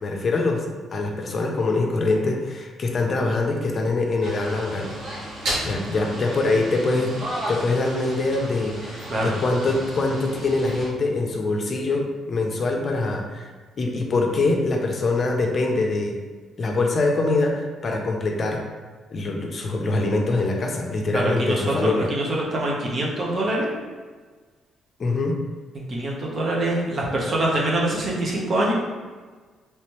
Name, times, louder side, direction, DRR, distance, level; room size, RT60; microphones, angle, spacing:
voice 1, 0.0-0.6 0.9-5.2 5.6-7.2 7.5-13.5 13.8-16.2 16.6-18.6 19.1-22.1 25.0-25.4, left 2 dB, 45° left, 2 dB, 0.5 m, -24 dB
sound 1, 4.2-10.9, right 1 dB, 70° right, 1.2 m, -33 dB
voice 2, 21.1-23.7 25.7-28.7, right 1 dB, 45° right, -3 dB, 0.9 m, -24 dB
3.2 x 3.1 x 3.0 m, 1.4 s
cardioid pair, 90°, 0 cm